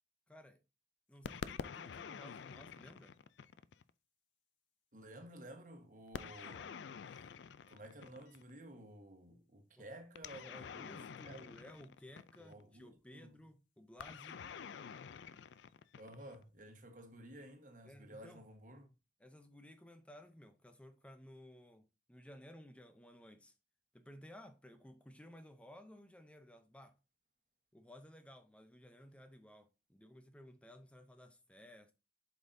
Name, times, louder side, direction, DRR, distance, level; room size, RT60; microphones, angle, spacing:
voice 1, 0.3-0.6 1.1-3.2 9.8-9.9 10.4-14.4 17.8-18.4 19.2-23.5 23.9-27.0 27.7-31.9, left 1 dB, 5° left, 0.5 m, -57 dB
sound 1, 1.2-3.9 6.1-8.5 10.2-12.6 14.0-16.4, left 6 dB, 75° left, 0.4 m, -48 dB
voice 2, 4.9-6.7 7.1-7.2 7.7-11.6 12.4-13.4 16.0-18.9, right 1 dB, 45° right, 1.3 m, -54 dB
7.4 x 5.3 x 2.7 m
head